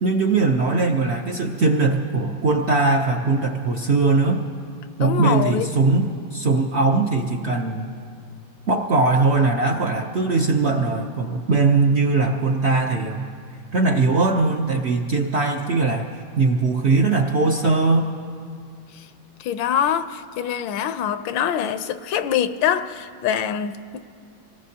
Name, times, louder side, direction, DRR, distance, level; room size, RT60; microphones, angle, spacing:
voice 1, 0.0-4.4 5.0-7.9 8.7-13.3 13.7-18.1, right 3 dB, 65° right, 0.6 m, -20 dB
voice 2, 5.0-5.7 18.9-19.1 19.4-24.0, left 9 dB, 80° left, 1.3 m, -24 dB
25.5 x 18.5 x 2.8 m
omnidirectional pair, 2.1 m